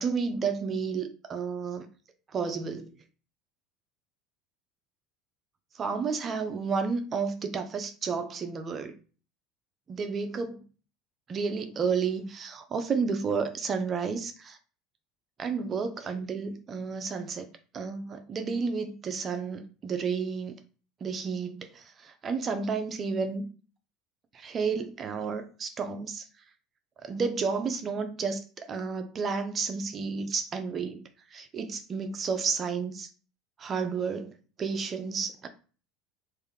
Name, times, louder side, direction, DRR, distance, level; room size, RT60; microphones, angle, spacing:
voice 1, 0.0-1.9 2.3-2.9 5.8-8.9 9.9-10.6 11.3-14.6 15.4-17.5 17.7-20.6 21.0-23.5 24.3-26.2 27.0-33.1 33.6-34.3 34.6-35.5, right 5 dB, 35° right, 0.7 m, -31 dB
3.3 x 2.7 x 3.7 m
hypercardioid pair, 80°, 0 cm